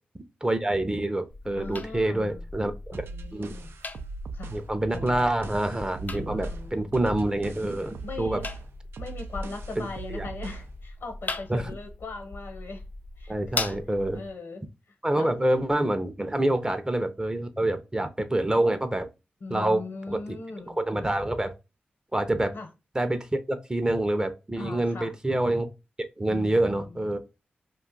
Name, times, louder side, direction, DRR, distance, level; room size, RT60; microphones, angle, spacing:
voice 1, 0.4-2.7 3.3-3.5 4.5-8.4 9.8-10.3 11.5-11.7 13.3-14.2 15.0-19.1 19.5-19.8 20.1-20.4 20.8-21.5 22.1-22.5 22.9-25.7 26.2-27.2, right 1 dB, 20° right, 0.5 m, -26 dB
sound 1, 1.3-14.3, left 3 dB, 45° left, 0.4 m, -39 dB
voice 2, 1.6-2.4 2.9-3.7 4.3-4.6 4.9-5.2 6.3-6.9 8.0-8.5 9.0-12.8 13.2-13.8 14.1-14.6 15.2-15.3 16.6-16.7 19.4-20.8 22.5-22.7 24.6-25.1 26.3-27.2, left 3 dB, 70° left, 0.9 m, -40 dB
sound 2, 2.9-10.7, right 4 dB, 75° right, 0.4 m, -41 dB
2.5 x 2.3 x 3.8 m
supercardioid pair, 40°, 4 cm